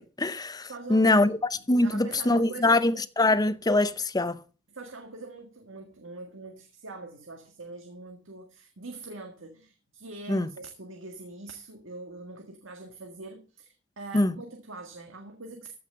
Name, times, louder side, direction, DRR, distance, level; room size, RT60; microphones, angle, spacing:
voice 1, 0.0-1.3 1.7-4.4 10.3-10.5 14.1-14.3, left 2 dB, 20° left, 0.7 m, -23 dB
voice 2, 0.7-1.4 1.8-2.9 4.7-15.7, right 3 dB, 85° right, 1.8 m, -43 dB
14.5 x 5.9 x 6.6 m
head